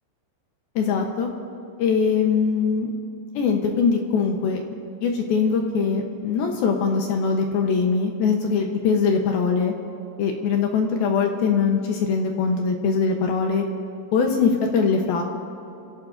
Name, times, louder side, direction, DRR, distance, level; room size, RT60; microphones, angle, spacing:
voice 1, 0.8-1.3 1.8-2.9 3.4-4.6 5.0-9.7 10.2-13.6 14.1-15.2, left 5 dB, 75° left, 2 dB, 2.4 m, -22 dB
29.0 x 16.5 x 2.6 m, 2.8 s
omnidirectional pair, 5.2 m